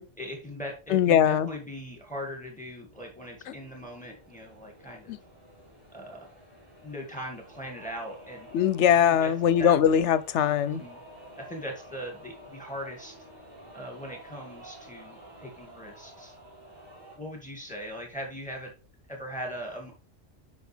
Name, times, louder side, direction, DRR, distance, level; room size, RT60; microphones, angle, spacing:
voice 1, 0.2-5.2 5.9-6.3 6.8-8.5 9.0-9.3 9.6-9.7 10.6-11.0 11.4-13.1 13.7-16.4 17.2-18.7 19.1-19.9, equal, 5° left, 1.9 m, -39 dB
voice 2, 0.9-1.5 5.1-5.2 8.5-10.8, left 9 dB, 70° left, 0.9 m, -21 dB
sound 1, 2.9-17.2, right 1 dB, 20° right, 4.6 m, -50 dB
8.1 x 5.5 x 3.4 m
omnidirectional pair, 1.3 m